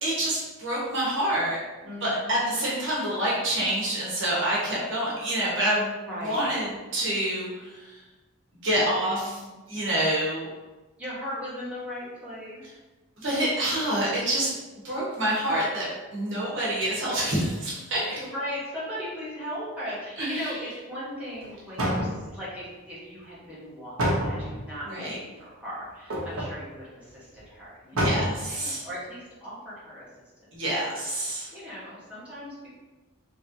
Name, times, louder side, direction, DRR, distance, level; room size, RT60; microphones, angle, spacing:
voice 1, 0.0-1.6 2.0-6.0 6.2-8.0 8.6-9.4 9.7-10.5 13.2-14.5 14.8-18.2 20.2-20.5 24.9-25.2 27.9-28.8 30.5-31.5, right 1 dB, 55° right, -6 dB, 1.4 m, -27 dB
voice 2, 1.8-2.8 6.1-6.5 8.8-9.6 11.0-12.6 16.3-17.0 18.2-30.1 30.4-30.5 30.8-31.0 31.2-32.8, equal, 5° right, -11 dB, 1.2 m, -38 dB
sound 1, 21.4-21.5 21.8-22.5 24.0-24.7 26.1-26.6 27.1-27.2 27.4-27.5 28.0-28.5 28.9-29.0, equal, 75° right, 1.0 m, -27 dB
4.2 x 3.3 x 2.8 m, 1.2 s
head